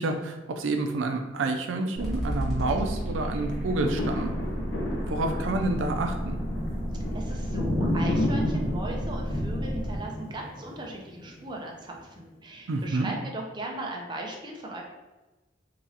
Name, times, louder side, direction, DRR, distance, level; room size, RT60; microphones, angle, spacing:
voice 1, 0.0-4.3 4.9-6.4 12.7-13.2, right 2 dB, 90° right, 4 dB, 0.4 m, -29 dB
sound 1, 2.0-10.0, equal, ahead, 1.0 m, -32 dB
sound 2, 3.4-11.7 12.2-12.3, left 1 dB, 70° left, 0.9 m, -32 dB
voice 2, 7.1-14.8, right 1 dB, 25° right, -1 dB, 0.5 m, -38 dB
3.9 x 3.0 x 2.8 m, 1.1 s
head